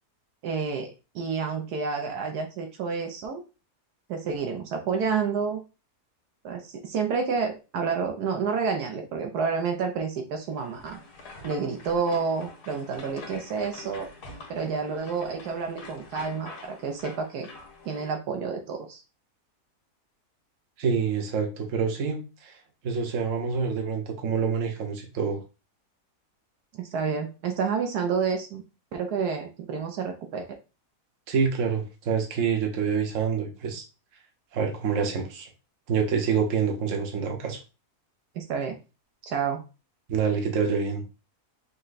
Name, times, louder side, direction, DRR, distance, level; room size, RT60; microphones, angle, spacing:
voice 1, 0.4-0.9 1.1-3.4 4.1-5.6 6.4-11.0 11.4-14.1 14.5-17.5 17.8-19.0 26.8-28.6 28.9-30.5 38.3-38.8 39.2-39.6, right 5 dB, 80° right, 4 dB, 1.2 m, -29 dB
sound 1, 10.5-18.1, left 3 dB, 80° left, 1.7 m, -45 dB
voice 2, 20.8-22.6 22.8-25.4 31.3-33.8 34.5-35.5 35.9-37.6 40.1-41.0, right 6 dB, 55° right, 3 dB, 1.2 m, -27 dB
5.4 x 2.2 x 3.9 m, 0.31 s
omnidirectional pair, 1.7 m